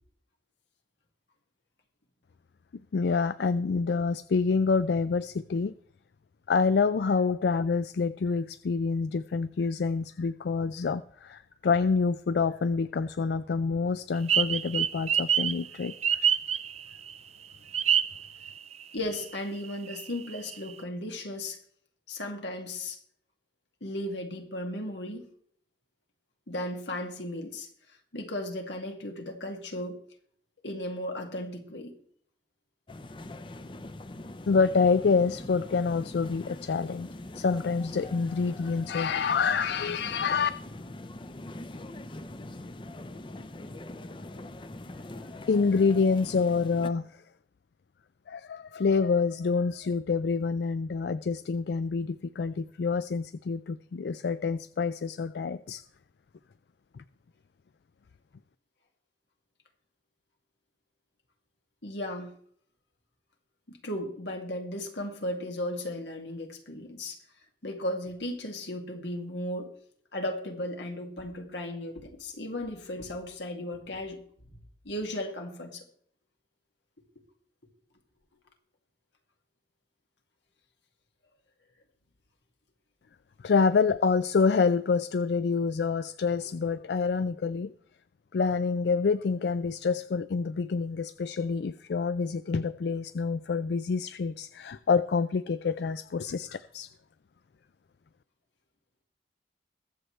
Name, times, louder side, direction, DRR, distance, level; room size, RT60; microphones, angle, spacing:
voice 1, 2.9-5.7 6.5-16.2 34.5-37.1 37.4-40.5 45.5-47.2 48.3-55.8 57.0-57.1 83.4-87.7 88.3-96.9, left 5 dB, 70° left, 0.4 m, -27 dB
sound 1, 14.3-17.1 17.7-18.8 19.1-19.2 19.6-20.7, right 8 dB, 35° right, 0.4 m, -26 dB
voice 2, 18.9-21.6 22.1-23.0 23.8-25.3 26.5-27.7 28.1-30.0 30.6-31.9 61.8-62.3 63.7-67.2 67.6-69.7 70.1-74.2 74.8-75.8, left 1 dB, 85° left, 2.2 m, -35 dB
sound 2, 32.9-46.9, left 1 dB, 30° left, 0.6 m, -42 dB
21.5 x 7.7 x 3.2 m
head